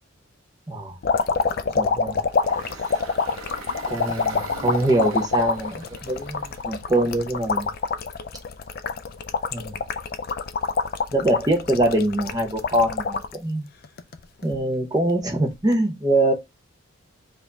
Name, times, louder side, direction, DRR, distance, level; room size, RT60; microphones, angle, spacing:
voice 1, 0.7-1.0 1.8-2.2 3.9-7.7 9.5-9.7 11.1-13.7 14.4-16.3, right 1 dB, 20° right, 0.8 m, -23 dB
sound 1, 1.0-13.4 13.8-14.6 15.6-15.7, left 5 dB, 45° left, 0.4 m, -26 dB
Engine, 2.2-7.4, right 3 dB, 75° right, 0.8 m, -41 dB
5.0 x 2.6 x 3.4 m
head